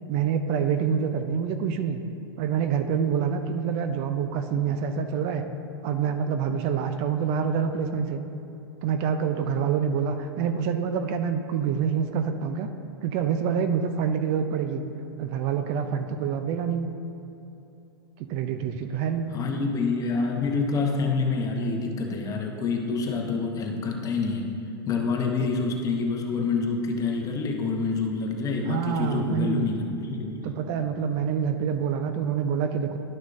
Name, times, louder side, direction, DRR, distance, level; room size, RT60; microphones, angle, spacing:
voice 1, 0.1-2.0 2.4-5.4 5.8-8.2 8.8-12.7 13.0-14.8 15.2-16.9 18.2-19.3 25.4-25.5 28.7-29.7 30.4-33.0, right 7 dB, 45° right, 8 dB, 0.5 m, -26 dB
voice 2, 19.3-24.5 24.9-30.5, left 4 dB, 25° left, 2 dB, 0.9 m, -27 dB
11.5 x 6.1 x 2.6 m, 2.9 s
hypercardioid pair, 115°, 13 cm